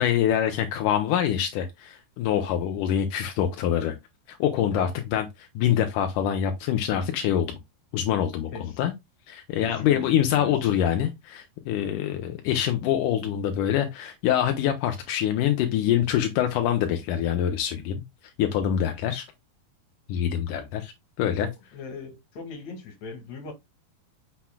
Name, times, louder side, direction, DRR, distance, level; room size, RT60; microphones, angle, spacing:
voice 1, 0.0-3.9 4.3-7.6 7.9-8.9 9.3-18.0 18.4-19.3 20.1-20.9 21.2-21.5, left 10 dB, 75° left, 1.9 m, -25 dB
voice 2, 8.5-8.8 9.6-10.6 21.4-23.5, left 4 dB, 50° left, 2.8 m, -39 dB
8.1 x 5.8 x 2.2 m
omnidirectional pair, 4.6 m